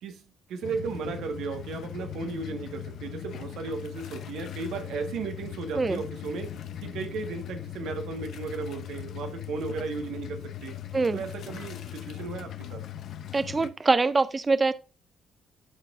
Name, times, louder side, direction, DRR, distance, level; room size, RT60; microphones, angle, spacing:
voice 1, 0.0-6.6 6.8-10.8 11.1-12.8, right 4 dB, 80° right, 1.5 m, -35 dB
sound 1, 0.6-13.7, left 11 dB, 70° left, 0.7 m, -39 dB
voice 2, 13.3-14.7, right 3 dB, 25° right, 0.4 m, -24 dB
11.5 x 4.3 x 2.5 m
cardioid pair, 90°, 0 cm